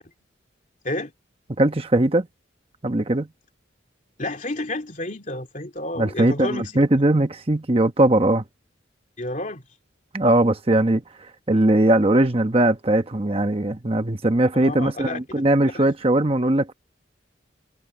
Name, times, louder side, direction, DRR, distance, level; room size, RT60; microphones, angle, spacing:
voice 1, 1.6-2.3 2.8-3.3 6.0-8.4 10.1-11.0 11.5-16.7, right 1 dB, 30° right, 1.0 m, -20 dB
voice 2, 4.2-6.7 9.2-9.6 14.5-15.4 15.7-15.9, left 1 dB, 40° left, 2.9 m, -30 dB
head